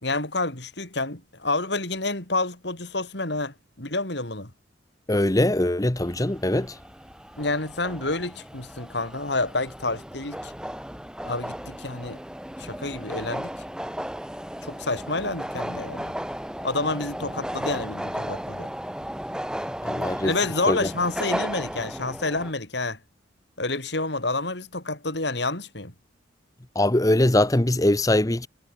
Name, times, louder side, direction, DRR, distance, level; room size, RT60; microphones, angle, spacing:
voice 1, 0.0-4.5 7.4-10.5 11.3-12.2 12.6-13.5 14.6-16.1 16.6-18.7 20.2-23.0 23.6-25.9, left 2 dB, 60° left, 4.3 m, -29 dB
voice 2, 5.1-6.7 19.8-20.3 20.7-20.8 26.7-28.5, left 1 dB, 20° left, 0.9 m, -22 dB
sound 1, 6.0-22.5, equal, 5° right, 6.0 m, -35 dB
head